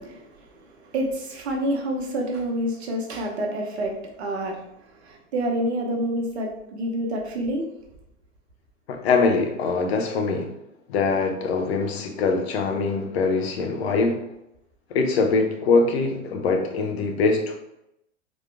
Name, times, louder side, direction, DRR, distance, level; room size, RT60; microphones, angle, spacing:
voice 1, 0.0-7.7, right 1 dB, 55° right, 1 dB, 1.2 m, -28 dB
voice 2, 8.9-10.5 10.9-14.3 14.9-17.6, left 4 dB, 55° left, 3 dB, 0.9 m, -23 dB
4.1 x 3.1 x 3.4 m, 0.83 s
figure-of-eight pair, 95°, 38 cm